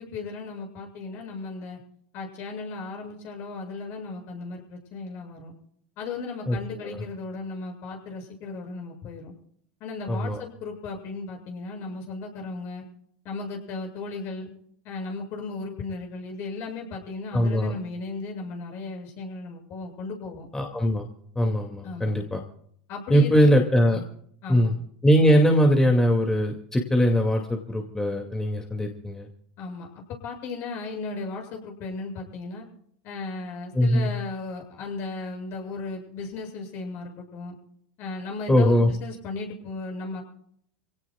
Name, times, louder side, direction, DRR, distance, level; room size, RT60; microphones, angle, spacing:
voice 1, 0.0-1.8 2.1-5.5 6.0-9.3 9.8-12.8 13.2-14.5 14.8-20.5 21.8-22.2 22.9-23.6 23.9-24.1 24.4-24.7 29.6-29.9 30.2-32.7 33.0-37.6 38.0-40.2, left 3 dB, 50° left, 2 dB, 7.5 m, -36 dB
voice 2, 6.5-7.0 10.1-10.4 17.3-17.7 20.5-21.1 21.4-22.4 23.1-24.0 24.5-24.7 25.0-29.3 33.7-34.1 38.5-38.9, equal, 10° left, 2 dB, 2.5 m, -21 dB
27.5 x 17.5 x 2.4 m, 0.67 s
hypercardioid pair, 95°, 5 cm